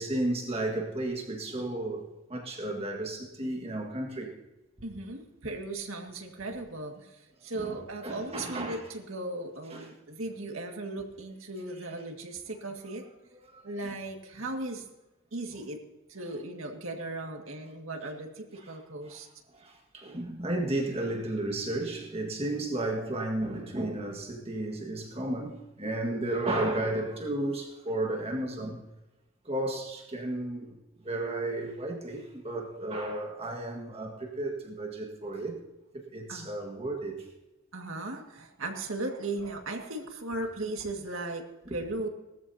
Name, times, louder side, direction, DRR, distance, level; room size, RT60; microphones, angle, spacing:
voice 1, 0.0-4.3 7.5-7.8 8.0-8.8 9.7-9.9 11.8-11.9 13.5-13.6 18.6-18.8 19.1-19.2 19.5-28.8 29.4-30.8 31.0-35.6 35.9-37.3 41.7-41.8, right 1 dB, 30° right, 1.8 m, -33 dB
voice 2, 4.8-13.0 13.6-14.8 15.3-15.8 16.1-19.3 36.3-36.5 37.7-42.1, right 2 dB, 80° right, 2.0 m, -37 dB
19.0 x 13.5 x 2.8 m
head